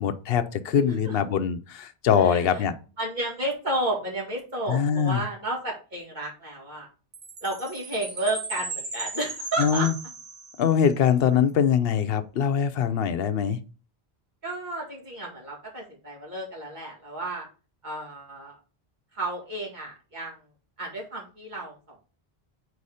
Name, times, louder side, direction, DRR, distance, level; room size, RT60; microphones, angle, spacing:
voice 1, 0.0-2.7 4.7-5.2 9.6-9.9 10.6-13.6, left 8 dB, 70° left, 11 dB, 0.8 m, -23 dB
voice 2, 0.8-1.2 2.2-2.6 3.0-6.9 7.4-9.9 14.4-17.5 17.8-18.6 19.1-20.4 20.8-22.0, right 1 dB, 45° right, -3 dB, 2.2 m, -32 dB
Chime, 7.1-10.8, right 3 dB, 75° right, 1.6 m, -37 dB
4.7 x 4.1 x 4.8 m, 0.35 s
omnidirectional pair, 1.0 m